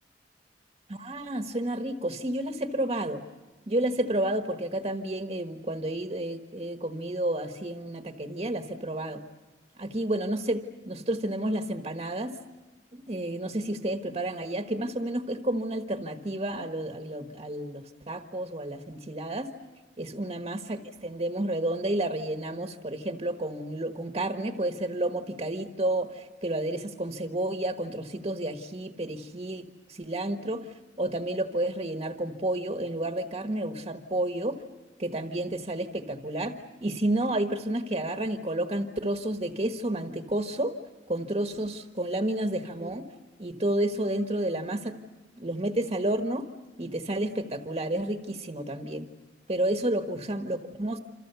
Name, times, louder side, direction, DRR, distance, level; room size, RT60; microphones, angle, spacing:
voice 1, 0.9-3.2 3.7-9.2 9.8-12.4 12.9-19.5 20.0-34.6 35.0-40.8 41.1-43.0 43.4-45.0 45.4-46.5 46.8-49.1 49.5-51.0, right 1 dB, 35° right, 6 dB, 1.3 m, -31 dB
27.5 x 26.5 x 6.9 m, 1.2 s
head